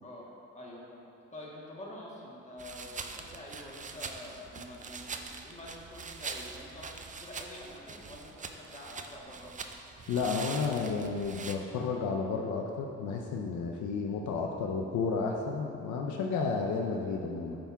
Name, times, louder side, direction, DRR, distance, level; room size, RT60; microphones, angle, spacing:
voice 1, 0.0-9.5, left 1 dB, 25° left, -4 dB, 1.7 m, -47 dB
sound 1, 2.6-11.5, right 4 dB, 25° right, 0.5 m, -43 dB
voice 2, 10.1-17.6, left 4 dB, 75° left, 1 dB, 0.6 m, -32 dB
8.8 x 3.5 x 5.8 m, 2.7 s
cardioid pair, 90°, 30 cm